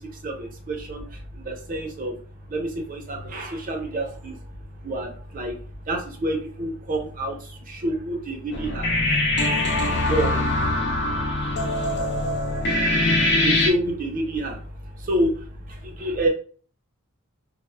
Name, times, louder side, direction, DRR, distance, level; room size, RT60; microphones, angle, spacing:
voice 1, 0.0-16.3, right 1 dB, 40° right, 2 dB, 0.6 m, -30 dB
sound 1, 8.5-13.7, left 1 dB, 55° left, 0.5 m, -22 dB
2.0 x 2.0 x 3.2 m, 0.42 s
head